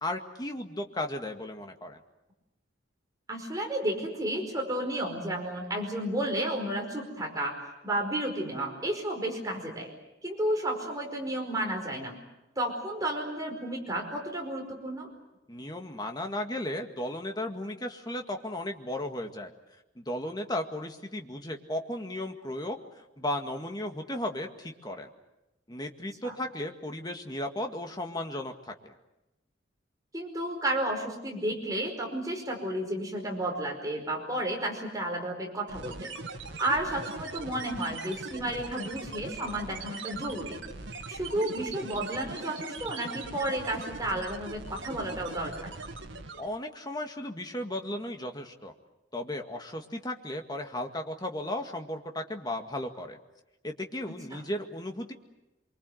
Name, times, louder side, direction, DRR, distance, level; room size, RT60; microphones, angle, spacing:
voice 1, 0.0-2.0 15.5-19.5 20.0-25.1 25.7-28.9 46.4-48.7 49.1-53.2 53.6-55.1, left 1 dB, 20° left, 4 dB, 2.0 m, -35 dB
voice 2, 3.3-7.6 7.8-9.9 10.2-12.2 12.5-15.1 26.2-26.3 30.1-36.1 36.6-40.6 41.1-45.7 54.3-54.4, right 1 dB, 20° right, 1 dB, 5.1 m, -32 dB
sound 1, 35.7-46.6, right 3 dB, 75° right, 1.9 m, -40 dB
25.5 x 24.0 x 7.9 m, 0.94 s
head